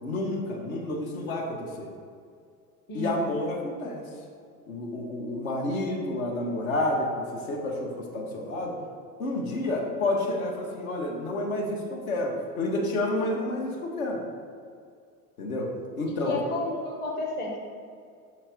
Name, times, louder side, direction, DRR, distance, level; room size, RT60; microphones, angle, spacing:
voice 1, 0.0-1.9 2.9-4.0 4.7-8.7 9.2-14.2 15.4-15.7 16.0-16.4, left 1 dB, 60° left, -1 dB, 1.3 m, -29 dB
voice 2, 2.9-3.3 16.1-17.6, left 2 dB, 20° left, -1 dB, 0.9 m, -32 dB
6.1 x 4.4 x 4.4 m, 2.2 s
figure-of-eight pair, 80°, 48 cm